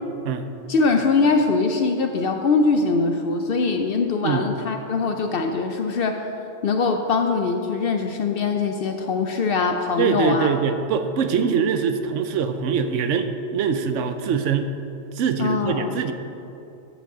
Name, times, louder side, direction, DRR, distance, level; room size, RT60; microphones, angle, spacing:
voice 1, 0.7-6.2 6.6-10.5 15.4-15.9, left 4 dB, 60° left, 5 dB, 0.7 m, -22 dB
voice 2, 10.0-14.7 15.1-16.1, right 6 dB, 75° right, 8 dB, 0.9 m, -23 dB
8.7 x 5.1 x 6.6 m, 2.7 s
omnidirectional pair, 1.3 m